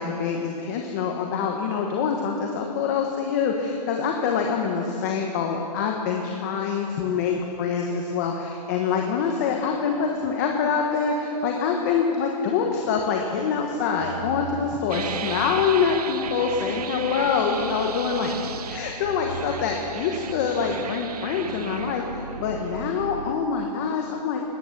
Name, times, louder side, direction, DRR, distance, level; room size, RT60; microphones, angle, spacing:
voice 1, 0.0-18.4 18.7-24.4, left 6 dB, 25° left, 2 dB, 1.0 m, -25 dB
sound 1, 12.5-13.3 13.5-22.0, right 4 dB, 45° right, 2.5 m, -42 dB
sound 2, 14.9-23.3, right 7 dB, 65° right, 0.8 m, -35 dB
19.0 x 9.9 x 6.6 m, 3.0 s
hypercardioid pair, 165°, 21 cm